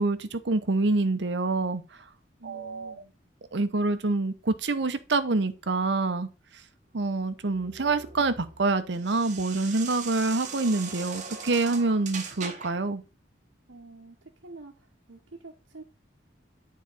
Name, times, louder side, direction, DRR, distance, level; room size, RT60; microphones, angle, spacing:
voice 1, 0.0-1.8 2.4-2.9 3.5-6.3 6.9-13.0, right 3 dB, 65° right, 0.8 m, -26 dB
voice 2, 2.4-3.1 13.7-14.2 14.4-15.8, right 3 dB, 85° right, 1.1 m, -47 dB
sound 1, 7.0-12.9, right 6 dB, 40° right, 1.0 m, -40 dB
9.5 x 4.1 x 4.1 m
head